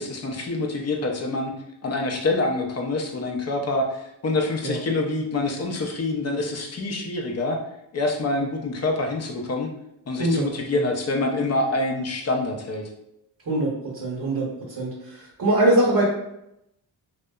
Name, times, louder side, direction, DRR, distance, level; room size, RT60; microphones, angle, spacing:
voice 1, 0.0-1.5 1.8-7.6 7.9-9.7 10.1-12.9, left 2 dB, 35° left, 2 dB, 0.5 m, -26 dB
voice 2, 13.5-14.5 14.8-16.0, right 1 dB, 45° right, -5 dB, 0.8 m, -22 dB
2.7 x 2.1 x 2.2 m, 0.82 s
cardioid pair, 80°, 46 cm